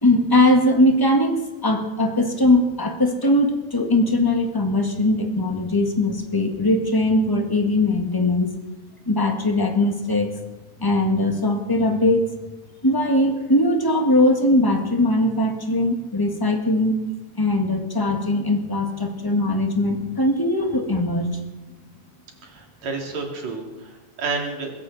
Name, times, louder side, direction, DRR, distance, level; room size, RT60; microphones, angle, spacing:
voice 1, 0.0-8.5 9.1-10.3 10.8-12.3 12.8-17.0 17.4-21.3, left 1 dB, 15° left, 3 dB, 0.8 m, -20 dB
voice 2, 22.4-24.7, right 4 dB, 65° right, 1 dB, 3.8 m, -30 dB
22.0 x 16.0 x 4.1 m, 1.1 s
omnidirectional pair, 3.3 m